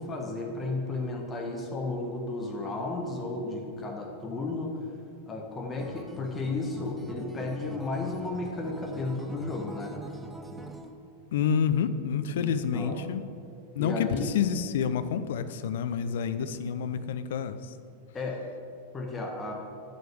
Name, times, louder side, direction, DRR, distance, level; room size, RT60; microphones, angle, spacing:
voice 1, 0.0-4.7 5.2-10.0 12.3-13.1 13.8-14.3 18.1-18.5 18.9-19.5, left 3 dB, 20° left, 0 dB, 1.2 m, -33 dB
Acoustic guitar, 5.8-10.9, right 2 dB, 10° right, 0.6 m, -44 dB
voice 2, 11.3-13.2 13.8-17.7, left 7 dB, 55° left, 11 dB, 0.4 m, -28 dB
7.8 x 5.1 x 7.5 m, 2.3 s
figure-of-eight pair, 90°, 0 cm